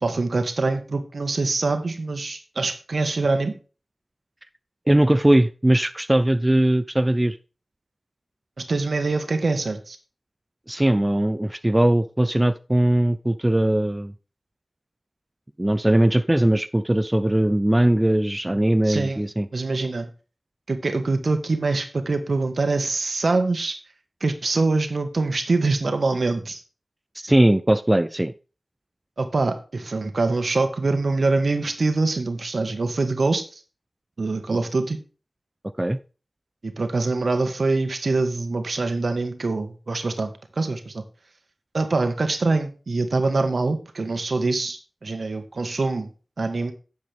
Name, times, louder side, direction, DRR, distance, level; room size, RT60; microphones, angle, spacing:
voice 1, 0.0-3.5 8.6-10.0 18.8-19.2 19.5-20.1 20.7-23.8 24.2-26.6 29.2-33.6 34.2-35.0 36.6-40.3 40.6-41.0 41.7-46.1 46.4-46.7, right 3 dB, 70° right, 8 dB, 1.5 m, -24 dB
voice 2, 4.9-7.4 10.7-14.1 15.6-19.5 27.2-28.3 35.8-36.0, right 1 dB, 20° right, 12 dB, 0.5 m, -20 dB
10.5 x 7.4 x 3.5 m, 0.34 s
cardioid pair, 40°, 0 cm